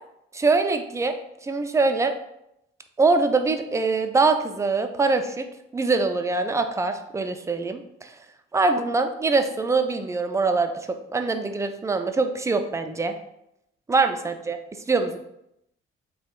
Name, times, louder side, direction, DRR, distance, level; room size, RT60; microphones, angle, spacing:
voice 1, 0.3-1.1 1.4-2.1 3.0-5.5 5.7-8.2 8.5-13.1 13.9-14.6 14.9-15.2, right 3 dB, 10° right, 7 dB, 0.3 m, -23 dB
3.5 x 3.0 x 2.4 m, 0.81 s
hypercardioid pair, 40°, 29 cm